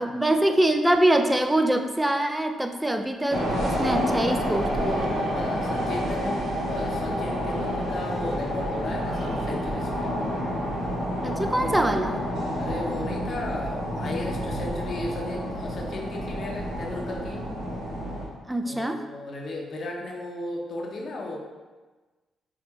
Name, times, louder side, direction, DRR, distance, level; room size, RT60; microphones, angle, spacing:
voice 1, 0.0-5.1 11.2-12.2 18.5-19.0, right 1 dB, 10° right, 6 dB, 0.5 m, -24 dB
sound 1, 3.3-18.3, equal, 75° right, 1.0 m, -29 dB
voice 2, 5.3-10.1 12.6-17.4 18.6-21.4, left 2 dB, 55° left, 0 dB, 0.8 m, -35 dB
5.9 x 2.5 x 3.1 m, 1.3 s
hypercardioid pair, 45°, 0 cm